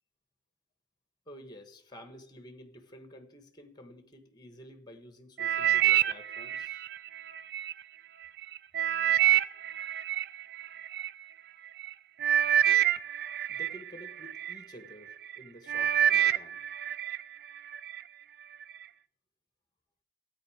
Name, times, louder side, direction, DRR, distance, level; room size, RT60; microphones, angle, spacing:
voice 1, 1.3-6.8 13.5-16.6, equal, 25° left, 1.4 m, -50 dB
sound 1, 5.4-7.7 8.2-11.1 11.8-11.9 12.2-14.6 15.1-15.4 15.7-17.2 17.6-18.0 18.6-18.7, right 11 dB, 55° right, 0.4 m, -27 dB
14.5 x 9.0 x 5.0 m
head